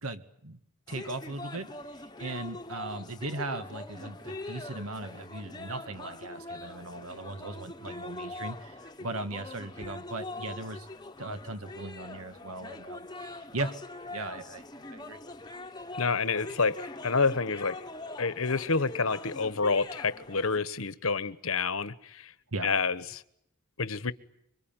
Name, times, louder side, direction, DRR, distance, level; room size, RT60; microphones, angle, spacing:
voice 1, 0.0-0.6 0.9-1.7 2.2-10.9 11.2-13.8 14.1-15.2 22.5-22.7, right 2 dB, 80° right, 2.0 m, -38 dB
sound 1, 0.9-20.6, left 2 dB, 20° left, 1.1 m, -43 dB
voice 2, 15.9-17.9 18.2-22.3 22.6-23.2 23.8-24.1, left 4 dB, 70° left, 1.2 m, -28 dB
26.0 x 24.5 x 9.0 m
head